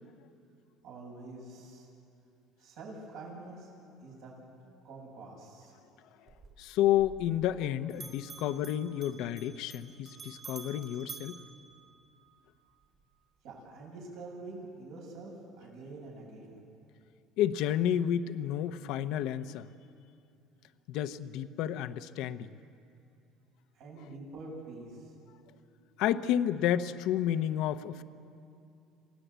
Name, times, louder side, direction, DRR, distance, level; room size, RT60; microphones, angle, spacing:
voice 1, 0.8-1.9 2.6-3.7 4.0-4.3 4.8-5.7 13.4-16.6 23.7-25.1, right 2 dB, 70° right, -3 dB, 7.2 m, -46 dB
Bell, 6.3-7.6 7.9-12.4, right 5 dB, 45° right, 3.4 m, -49 dB
voice 2, 6.6-11.4 17.4-19.7 20.9-22.5 26.0-28.0, left 11 dB, 70° left, 11 dB, 0.8 m, -30 dB
27.5 x 17.5 x 8.2 m, 2.6 s
supercardioid pair, 105°, 0 cm